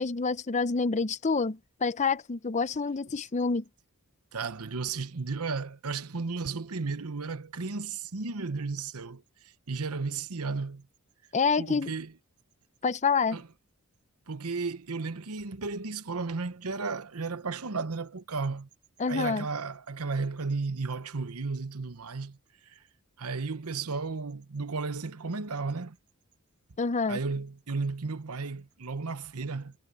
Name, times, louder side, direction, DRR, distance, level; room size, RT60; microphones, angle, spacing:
voice 1, 0.0-3.6 11.3-11.9 12.8-13.4 19.0-19.5 26.8-27.2, left 4 dB, 30° left, 0.6 m, -27 dB
voice 2, 4.3-9.2 9.7-10.9 11.6-12.1 13.3-13.5 14.3-18.7 19.1-22.4 22.7-22.8 23.2-26.0 27.1-29.7, right 4 dB, 80° right, 1.0 m, -34 dB
head